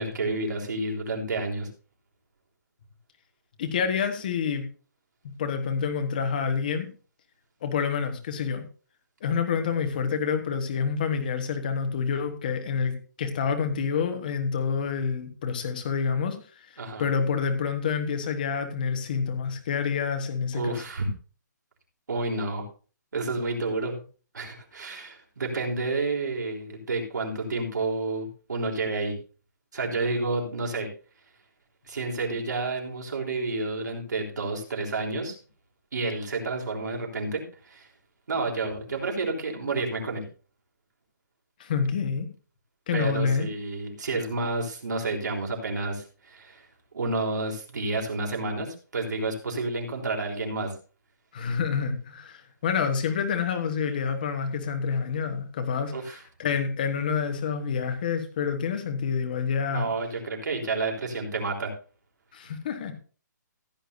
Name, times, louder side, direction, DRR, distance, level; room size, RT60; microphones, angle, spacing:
voice 1, 0.0-1.7 16.8-17.1 20.5-21.1 22.1-22.7 23.1-24.0 24.3-29.2 29.7-30.9 31.9-35.4 35.9-37.9 38.3-40.3 42.9-46.7 46.9-50.7 55.9-56.2 59.7-61.7, right 3 dB, 70° right, 1 dB, 3.6 m, -30 dB
voice 2, 3.6-4.6 5.4-6.9 7.6-8.6 9.2-20.8 41.6-42.3 42.9-43.5 51.3-59.9 62.3-62.9, left 6 dB, 25° left, 6 dB, 1.3 m, -28 dB
15.5 x 8.9 x 2.6 m, 0.37 s
hypercardioid pair, 180°, 10 cm